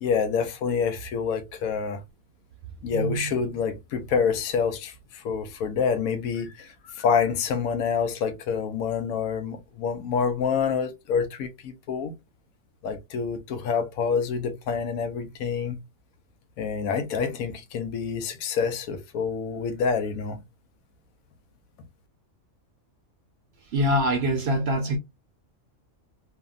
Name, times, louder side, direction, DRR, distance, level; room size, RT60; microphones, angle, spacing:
voice 1, 0.0-2.0 2.8-12.1 12.8-15.8 16.6-20.4, left 6 dB, 80° left, 1.1 m, -27 dB
voice 2, 2.9-3.3 23.7-25.0, equal, 60° right, 0.7 m, -24 dB
2.7 x 2.5 x 2.4 m
omnidirectional pair, 1.4 m